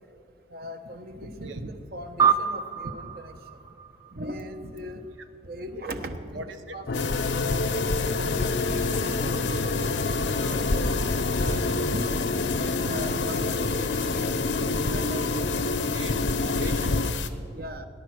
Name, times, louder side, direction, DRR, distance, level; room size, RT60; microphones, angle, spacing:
voice 1, 0.5-3.3 4.1-5.0 5.4-6.3 6.7-7.1 7.4-7.6 8.2-11.0 11.4-12.1 12.6-14.4 14.9-15.5 17.5-17.9, equal, 55° right, 7 dB, 1.0 m, -40 dB
voice 2, 1.1-1.7 4.1-4.3 4.6-4.7 6.3-6.6 7.9-8.0 8.5-8.7 11.9-12.3 12.7-13.7 14.1-14.2 15.9-17.0, right 1 dB, 85° right, 8 dB, 1.1 m, -39 dB
sound 1, 2.2-4.9, right 7 dB, 15° right, 0.5 m, -27 dB
sound 2, 6.9-17.3, left 4 dB, 80° left, 0.9 m, -31 dB
sound 3, 6.9-17.1, left 3 dB, 55° left, 0.5 m, -28 dB
19.0 x 10.5 x 6.3 m, 2.4 s
head